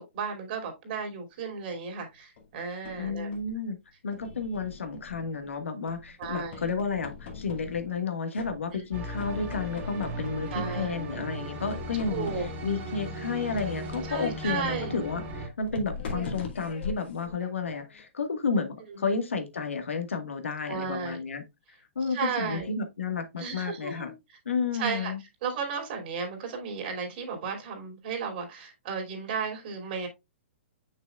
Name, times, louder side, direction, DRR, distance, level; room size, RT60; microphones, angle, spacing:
voice 1, 0.0-3.3 6.2-6.6 8.7-8.9 10.5-10.9 12.1-12.5 14.1-14.9 16.1-16.4 18.9-19.1 20.7-21.2 22.1-22.7 23.4-24.1 24.7-25.1 25.4-30.1, right 5 dB, 50° right, 2.7 m, -34 dB
sound 1, 2.4-3.6 4.1-5.5 5.9-8.0 8.3-8.9 9.2-11.1 11.7-12.8 13.5-18.0, left 5 dB, 60° left, 2.1 m, -42 dB
voice 2, 3.0-3.8 4.0-21.4 21.9-24.1 24.4-25.2, left 4 dB, 85° left, 1.5 m, -31 dB
sound 2, 8.9-15.5, right 1 dB, 30° right, 2.2 m, -37 dB
6.6 x 6.1 x 2.3 m
hypercardioid pair, 130°, 7 cm